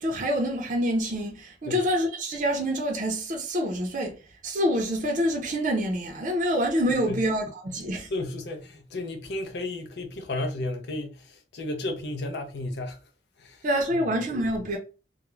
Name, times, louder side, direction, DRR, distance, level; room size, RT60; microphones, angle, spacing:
voice 1, 0.0-4.1 4.4-8.1 13.6-14.8, equal, 45° right, 0.5 m, -26 dB
voice 2, 6.9-7.2 8.1-13.0 13.4-13.6 13.9-14.2, left 2 dB, 65° left, 0.5 m, -33 dB
2.3 x 2.0 x 3.0 m
head